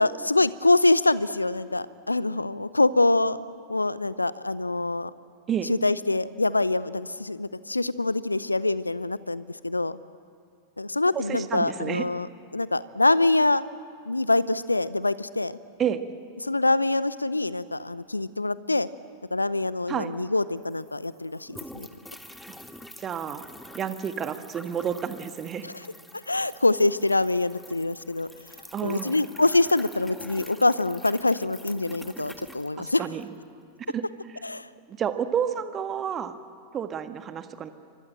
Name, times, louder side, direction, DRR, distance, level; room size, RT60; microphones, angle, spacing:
voice 1, 0.0-5.1 5.6-10.0 10.8-12.3 12.5-13.6 14.1-15.5 16.4-18.9 19.3-21.9 25.6-25.9 26.3-28.3 28.8-33.1 34.4-34.7, left 2 dB, 85° left, 18 dB, 0.7 m, -25 dB
voice 2, 11.1-12.0 15.8-16.0 19.9-20.1 22.5-22.6 23.0-23.4 23.7-25.6 28.7-29.2 32.8-33.3 33.9-34.0 34.9-36.3 36.7-37.7, right 8 dB, 25° right, 9 dB, 1.6 m, -30 dB
sound 1, 20.6-33.4, left 1 dB, 5° left, 1.6 m, -46 dB
29.5 x 24.5 x 7.7 m, 2.3 s
figure-of-eight pair, 90°, 0 cm